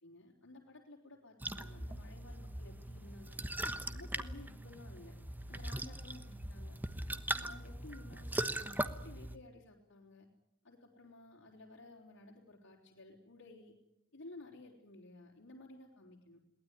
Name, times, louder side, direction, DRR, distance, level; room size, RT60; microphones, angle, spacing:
voice 1, 0.0-3.4 3.8-5.2 5.5-6.8 7.1-10.3 10.6-13.7 14.1-16.4, left 2 dB, 70° left, -3 dB, 3.9 m, -55 dB
sound 1, 1.4-9.4, right 1 dB, 10° right, 1.1 m, -40 dB
22.5 x 18.5 x 9.9 m, 0.81 s
head